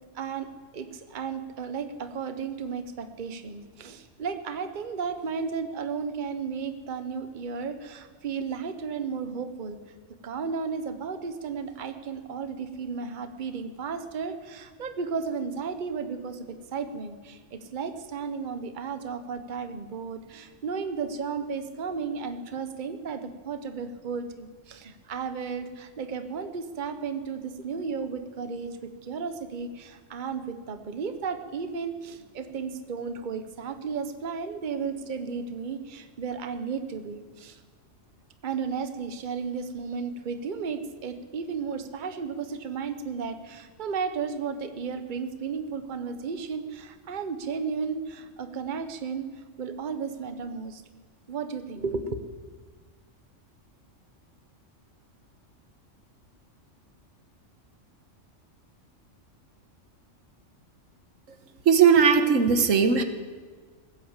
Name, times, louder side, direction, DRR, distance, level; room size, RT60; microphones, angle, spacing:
voice 1, 0.1-0.5 0.7-9.8 10.2-37.6 38.4-49.3 49.6-50.8 51.3-52.2, right 5 dB, 40° right, 9 dB, 1.1 m, -34 dB
voice 2, 61.6-63.0, right 6 dB, 85° right, 8 dB, 1.5 m, -18 dB
19.5 x 8.6 x 8.2 m, 1.4 s
omnidirectional pair, 1.3 m